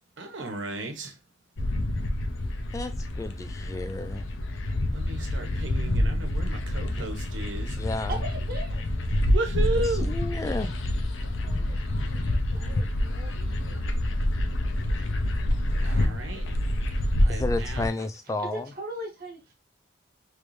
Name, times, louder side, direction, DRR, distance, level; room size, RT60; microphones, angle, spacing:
voice 1, 0.2-1.1 4.9-7.8 9.3-10.1 12.5-12.8 15.7-16.4 17.2-17.9, right 2 dB, 85° right, 0.9 m, -34 dB
sound 1, 1.6-17.9, left 1 dB, 85° left, 0.6 m, -27 dB
voice 2, 2.7-4.2 7.0-7.1 7.7-8.2 9.7-10.7 17.3-18.7, left 2 dB, 15° left, 0.3 m, -32 dB
voice 3, 8.1-8.8 11.4-13.9 18.0-18.1 18.4-19.5, right 1 dB, 55° right, 1.0 m, -40 dB
3.2 x 2.6 x 3.1 m
head